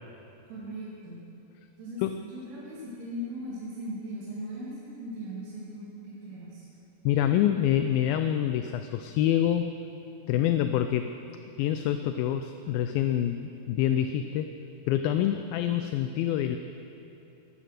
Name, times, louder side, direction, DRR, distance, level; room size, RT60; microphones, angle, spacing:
voice 1, 0.5-1.2 1.8-6.7, equal, 60° right, -8 dB, 3.9 m, -39 dB
voice 2, 7.1-9.7 10.3-11.1 11.6-14.5 14.9-16.6, left 11 dB, 85° left, 8 dB, 2.1 m, -26 dB
14.0 x 11.0 x 6.6 m, 2.9 s
omnidirectional pair, 4.5 m